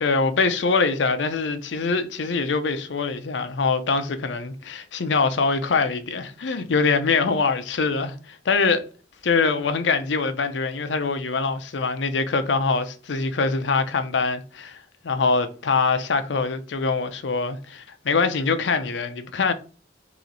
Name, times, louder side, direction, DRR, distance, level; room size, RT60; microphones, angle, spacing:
voice 1, 0.0-8.8 9.2-14.8 15.0-19.5, left 4 dB, 90° left, 0.6 m, -23 dB
3.1 x 3.1 x 3.8 m
head